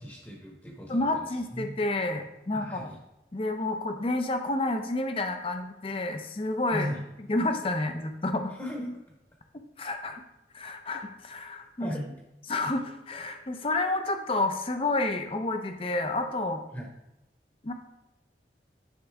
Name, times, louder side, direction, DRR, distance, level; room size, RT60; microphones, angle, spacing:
voice 1, 0.0-1.7 2.6-3.0 6.7-7.0 8.6-9.0 11.8-12.1 16.7-16.9, equal, 15° left, -1 dB, 1.0 m, -37 dB
voice 2, 0.9-2.9 3.3-6.9 7.3-8.5 9.8-10.2 10.5-11.9 12.5-16.6 17.6-17.7, left 2 dB, 30° left, 6 dB, 0.6 m, -29 dB
10.0 x 4.0 x 3.5 m, 0.93 s
head